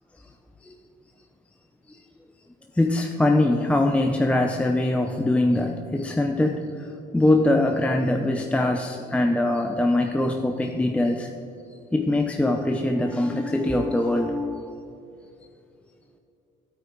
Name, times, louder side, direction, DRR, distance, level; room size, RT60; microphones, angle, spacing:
voice 1, 2.7-11.3 11.9-14.8, left 1 dB, 5° left, 3 dB, 0.6 m, -23 dB
13.0 x 9.0 x 4.5 m, 2.7 s
cardioid pair, 110°, 17 cm